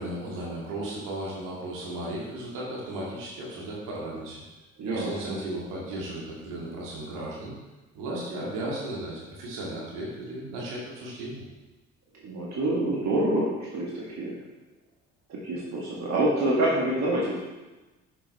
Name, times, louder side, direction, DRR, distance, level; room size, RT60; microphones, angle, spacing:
voice 1, 0.0-4.4 4.8-7.5 7.9-11.4, right 1 dB, 75° right, -5 dB, 2.1 m, -35 dB
voice 2, 4.8-5.4 12.2-14.3 15.3-17.4, right 1 dB, 55° right, -5 dB, 1.8 m, -27 dB
6.6 x 5.8 x 4.2 m, 1.1 s
hypercardioid pair, 55°, 32 cm